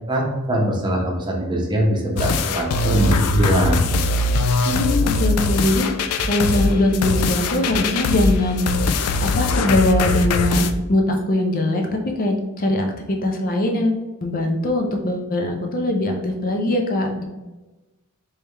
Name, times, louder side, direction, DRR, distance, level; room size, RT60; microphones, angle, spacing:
voice 1, 0.1-3.9, right 1 dB, 20° right, -2 dB, 0.8 m, -21 dB
sound 1, 2.2-10.7, left 3 dB, 85° left, 0.3 m, -21 dB
sound 2, 3.4-3.8 4.1-4.3 4.6-4.8 5.1-5.8 6.1-6.3 6.6-6.8 7.1-7.8 8.1-8.3 8.6-8.8 9.1-9.8 10.1-10.3 10.6-10.8 11.1-11.2, right 2 dB, 80° right, 0.7 m, -32 dB
voice 2, 4.6-5.9 6.2-8.9 9.2-17.2, left 1 dB, 40° left, 3 dB, 0.6 m, -21 dB
3.4 x 3.1 x 3.3 m, 1.1 s
head